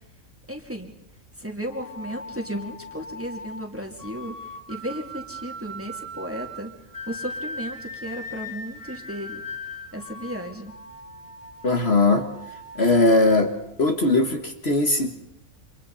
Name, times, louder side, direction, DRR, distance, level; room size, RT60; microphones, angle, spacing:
voice 1, 0.5-0.9 1.4-4.3 4.7-6.7 7.1-9.4 9.9-10.7, equal, 10° right, 2 dB, 2.7 m, -34 dB
sound 1, 1.7-14.5, left 1 dB, 15° left, 2.9 m, -40 dB
voice 2, 11.6-12.3 12.8-13.5 13.8-15.2, left 2 dB, 50° left, 4 dB, 1.9 m, -19 dB
29.5 x 26.5 x 4.2 m, 0.80 s
omnidirectional pair, 1.4 m